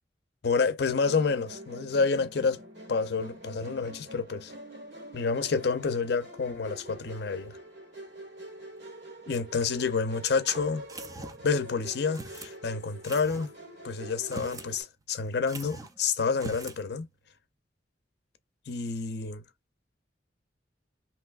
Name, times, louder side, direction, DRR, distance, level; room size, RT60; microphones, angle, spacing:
voice 1, 0.4-2.6 2.9-4.5 5.1-7.6 9.3-10.8 11.4-13.5 13.8-17.1 18.7-19.4, left 4 dB, 60° left, 0.5 m, -29 dB
Musical instrument, 1.0-14.8, right 1 dB, 75° right, 1.7 m, -46 dB
sound 1, 8.7-9.0 9.6-12.8 13.6-13.7, right 2 dB, 55° right, 1.1 m, -52 dB
sound 2, 10.9-11.5 12.1-12.5 13.0-13.5 14.2-14.7 15.0-15.1 15.5-16.0 16.3-16.8, right 2 dB, 20° right, 0.4 m, -42 dB
3.2 x 2.8 x 2.3 m
head